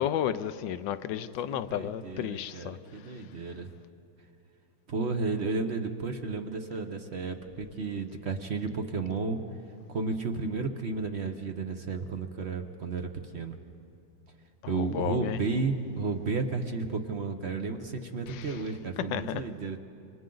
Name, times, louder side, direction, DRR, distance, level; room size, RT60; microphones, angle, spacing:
voice 1, 0.0-2.8 14.6-15.4 18.3-18.6 19.1-19.4, left 10 dB, 70° left, 1.2 m, -32 dB
voice 2, 1.4-3.7 4.9-9.4 9.9-13.6 14.7-19.8, right 4 dB, 50° right, 0.8 m, -33 dB
28.5 x 25.5 x 3.9 m
omnidirectional pair, 2.3 m